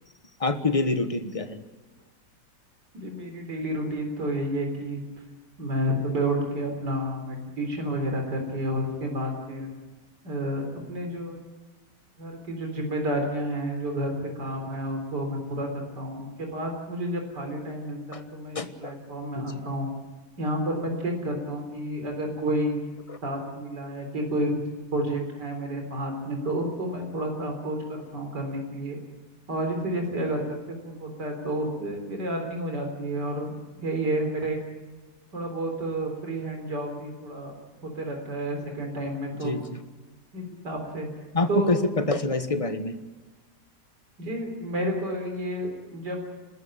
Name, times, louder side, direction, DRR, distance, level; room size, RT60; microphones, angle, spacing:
voice 1, 0.4-1.6 18.1-18.2 18.5-18.9 19.3-19.5 23.1-23.2 39.4-39.8 41.3-43.0, left 2 dB, 20° left, 9 dB, 1.3 m, -26 dB
voice 2, 2.9-5.0 5.6-9.7 10.2-11.4 12.2-19.9 20.4-22.8 23.2-24.6 24.9-29.0 29.5-34.6 35.3-37.5 37.8-39.5 40.3-41.1 41.5-41.8 44.2-46.2, right 1 dB, 80° right, 3 dB, 4.4 m, -30 dB
29.0 x 13.5 x 9.0 m, 1.3 s
omnidirectional pair, 1.8 m